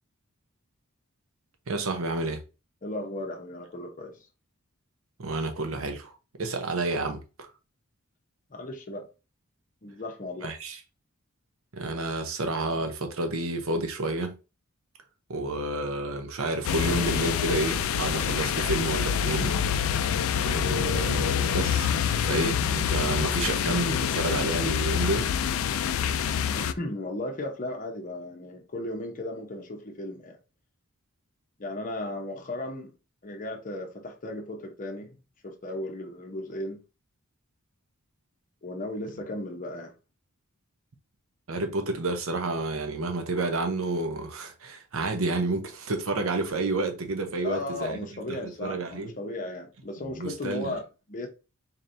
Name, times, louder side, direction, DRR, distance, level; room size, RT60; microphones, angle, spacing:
voice 1, 1.7-2.4 5.2-6.1 6.4-7.5 10.4-10.8 11.7-14.4 15.3-19.6 20.4-21.9 22.2-25.3 41.5-48.1 48.6-49.1 50.2-50.7, right 2 dB, 70° right, 0.8 m, -30 dB
voice 2, 2.8-4.1 8.5-9.0 9.8-10.5 26.6-30.4 31.6-32.9 33.2-35.1 35.4-36.8 38.6-39.9 47.4-51.3, left 1 dB, 40° left, 0.8 m, -35 dB
sound 1, 16.6-26.7, left 8 dB, 70° left, 0.3 m, -26 dB
4.1 x 3.3 x 2.6 m
head